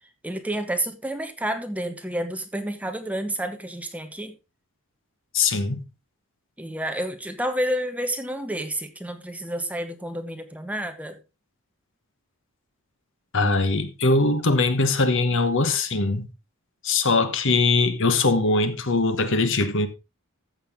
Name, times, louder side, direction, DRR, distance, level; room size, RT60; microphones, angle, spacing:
voice 1, 0.2-4.4 6.6-11.2 17.0-17.1, right 1 dB, 5° right, 1.0 m, -30 dB
voice 2, 5.3-5.8 13.3-16.3 16.8-19.9, left 3 dB, 60° left, 1.2 m, -21 dB
14.5 x 6.6 x 3.6 m
head